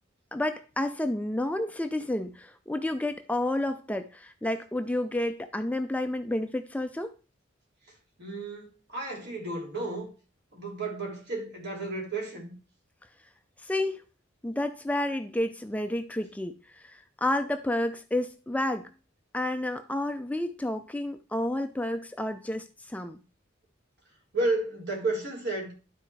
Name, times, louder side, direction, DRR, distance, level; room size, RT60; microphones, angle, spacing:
voice 1, 0.3-7.1 13.6-14.0 14.4-18.9 19.3-23.2, left 1 dB, 5° left, 0.4 m, -30 dB
voice 2, 8.2-10.1 10.5-12.6 24.3-25.7, right 2 dB, 55° right, 3.5 m, -32 dB
12.0 x 4.3 x 4.7 m
head